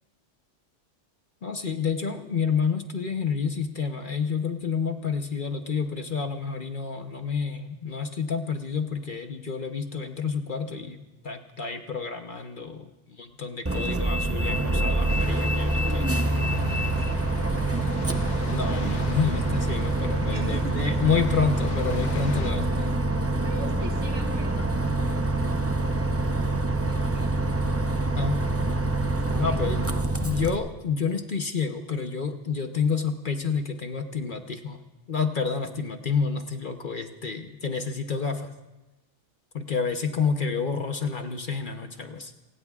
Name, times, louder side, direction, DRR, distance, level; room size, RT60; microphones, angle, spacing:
voice 1, 1.4-16.1 17.0-17.1 18.5-22.9 28.2-28.4 29.4-34.8 35.1-38.5 39.5-42.3, left 5 dB, 45° left, 6 dB, 1.0 m, -29 dB
Bus, 13.7-30.6, right 2 dB, 15° right, 0.5 m, -26 dB
sound 1, 15.1-22.5, left 6 dB, 70° left, 1.2 m, -42 dB
voice 2, 16.5-17.3 20.3-21.0 22.8-23.0 23.4-27.4 29.3-29.6 35.5-35.6, right 3 dB, 65° right, 1 dB, 2.1 m, -43 dB
28.0 x 17.0 x 2.4 m, 1.1 s
omnidirectional pair, 1.3 m